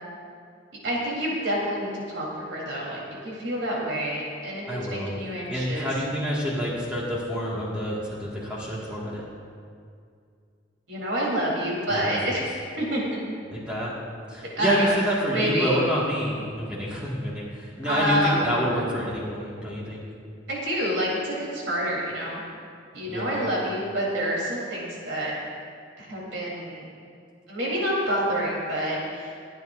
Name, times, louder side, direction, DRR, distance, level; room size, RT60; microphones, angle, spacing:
voice 1, 0.8-4.6 4.9-5.9 10.9-12.4 12.8-13.2 14.6-14.9 15.3-15.8 17.9-18.4 20.5-22.4 22.9-25.3 26.0-26.9 27.5-29.3, equal, 70° right, -4 dB, 3.8 m, -28 dB
voice 2, 4.7-5.1 5.5-9.2 11.9-12.1 13.5-13.9 14.3-20.0 23.1-23.4, equal, 5° right, -7 dB, 2.0 m, -28 dB
27.0 x 9.3 x 2.7 m, 2.3 s
head